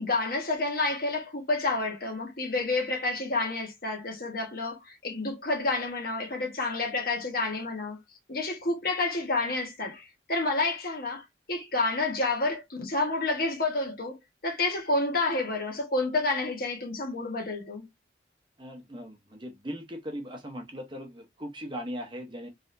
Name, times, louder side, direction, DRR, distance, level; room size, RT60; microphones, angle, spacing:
voice 1, 0.0-8.0 8.3-17.8, left 2 dB, 55° left, 1.4 m, -29 dB
voice 2, 18.6-22.5, equal, 25° right, 0.9 m, -39 dB
3.7 x 3.4 x 2.7 m
head